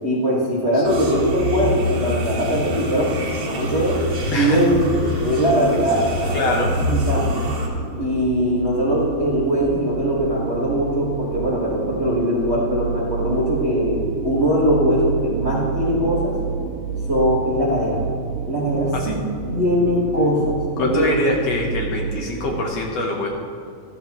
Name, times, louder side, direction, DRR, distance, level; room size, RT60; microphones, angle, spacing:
voice 1, 0.0-4.0 4.3-7.4 8.0-16.3 17.1-18.0 18.5-19.2 19.5-21.1, equal, 30° right, -5 dB, 1.2 m, -21 dB
sound 1, 0.8-7.7, equal, 50° right, 2.8 m, -26 dB
sound 2, 3.8-22.7, right 5 dB, 85° right, 2.3 m, -30 dB
voice 2, 4.3-4.6 5.2-5.4 6.3-6.7 18.9-19.2 20.8-23.3, left 1 dB, 60° left, 0 dB, 1.9 m, -24 dB
14.0 x 14.0 x 3.0 m, 2.3 s
omnidirectional pair, 3.7 m